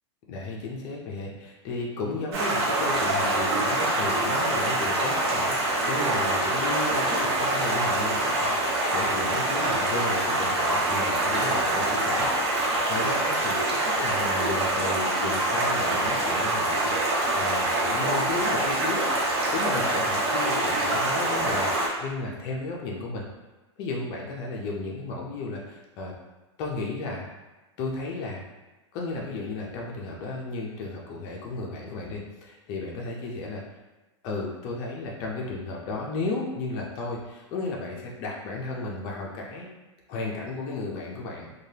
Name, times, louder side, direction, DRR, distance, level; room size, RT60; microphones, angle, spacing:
voice 1, 0.3-23.3 23.8-26.1 26.6-27.3 27.8-28.4 28.9-33.6 34.2-39.7 40.1-41.5, left 3 dB, 25° left, -2 dB, 0.3 m, -34 dB
Stream, 2.3-21.9, right 1 dB, 60° right, 0.8 m, -25 dB
3.2 x 2.2 x 2.7 m, 1.1 s
supercardioid pair, 170°, 15 cm